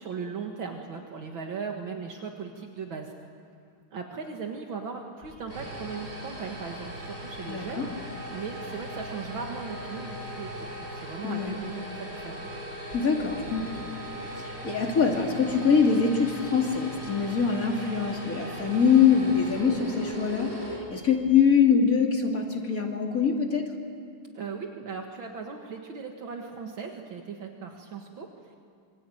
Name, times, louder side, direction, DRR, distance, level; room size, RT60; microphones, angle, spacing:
voice 1, 0.0-3.1 3.9-7.9 8.3-12.4 24.4-28.6, right 5 dB, 70° right, 2 dB, 2.4 m, -38 dB
sound 1, 5.2-21.4, equal, 30° right, 7.3 m, -39 dB
voice 2, 7.5-7.9 11.2-11.5 12.9-13.9 14.2-23.6, left 6 dB, 40° left, 1 dB, 2.9 m, -24 dB
27.0 x 24.0 x 8.9 m, 2.3 s
omnidirectional pair, 2.3 m